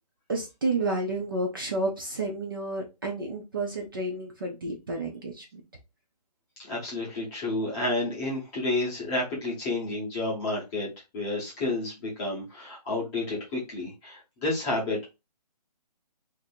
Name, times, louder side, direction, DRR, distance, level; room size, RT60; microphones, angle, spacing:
voice 1, 0.3-5.6, right 2 dB, 30° right, 1 dB, 0.6 m, -31 dB
voice 2, 6.6-15.0, left 2 dB, 10° left, -5 dB, 0.8 m, -30 dB
2.7 x 2.6 x 4.2 m, 0.26 s
hypercardioid pair, 170°, 21 cm